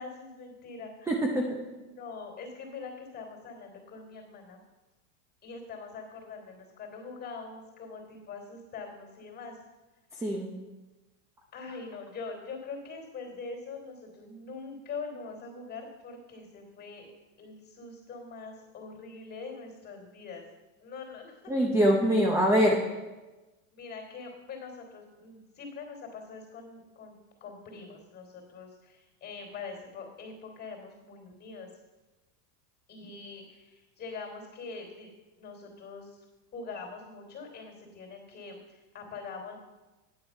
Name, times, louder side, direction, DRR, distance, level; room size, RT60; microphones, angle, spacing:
voice 1, 0.0-1.1 1.8-4.6 5.4-9.6 11.5-17.1 17.4-20.4 20.8-21.6 23.7-27.1 27.4-31.7 32.9-36.2 36.5-39.6, left 4 dB, 20° left, 1 dB, 3.3 m, -43 dB
voice 2, 1.1-1.5 10.2-10.5 21.5-22.8, equal, 5° right, 0 dB, 0.6 m, -24 dB
10.0 x 7.4 x 5.6 m, 1.1 s
supercardioid pair, 150°, 47 cm